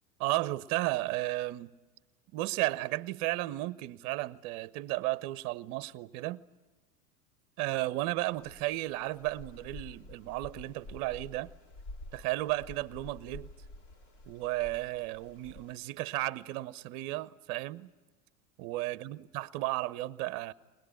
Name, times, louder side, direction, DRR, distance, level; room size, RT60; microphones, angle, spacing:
voice 1, 0.2-1.7 2.3-6.4 7.6-11.5 12.1-13.5 14.3-17.9 18.6-20.5, right 18 dB, 40° right, 0.8 m, -34 dB
sound 1, 8.3-15.8, left 2 dB, 50° left, 2.9 m, -50 dB
21.5 x 21.0 x 10.0 m
figure-of-eight pair, 90°, 47 cm